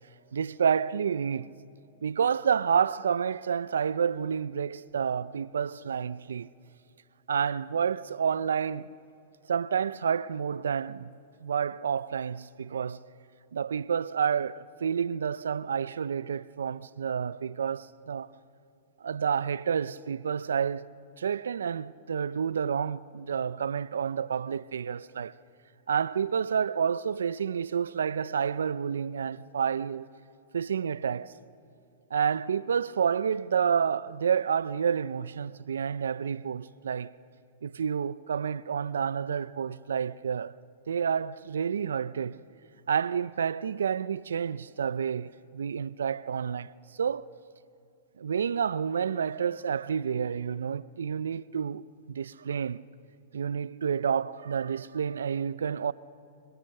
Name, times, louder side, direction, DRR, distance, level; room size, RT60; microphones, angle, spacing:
voice 1, 0.3-1.5 2.0-6.5 7.3-8.9 9.5-11.2 11.4-13.0 13.5-18.3 19.0-20.9 21.2-25.3 25.9-30.1 30.5-31.3 32.1-37.1 37.6-40.5 40.9-42.4 42.9-47.3 48.2-52.8 53.3-55.9, right 7 dB, 85° right, 0.5 m, -29 dB
26.5 x 24.5 x 6.6 m
hypercardioid pair, 115°, 0 cm